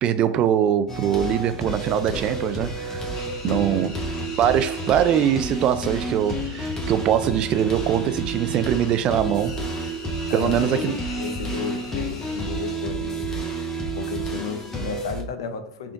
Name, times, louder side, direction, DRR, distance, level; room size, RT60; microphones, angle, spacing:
voice 1, 0.0-3.0 3.4-3.9 4.4-9.6 10.3-11.0, right 9 dB, 40° right, 0.3 m, -22 dB
sound 1, 0.9-15.2, right 2 dB, 20° left, 0.9 m, -30 dB
sound 2, 3.1-12.8, left 2 dB, 55° left, 1.3 m, -43 dB
voice 2, 3.4-3.9 10.3-13.2 13.9-15.9, left 6 dB, 80° left, 0.5 m, -33 dB
3.6 x 2.4 x 3.6 m
hypercardioid pair, 95°, 2 cm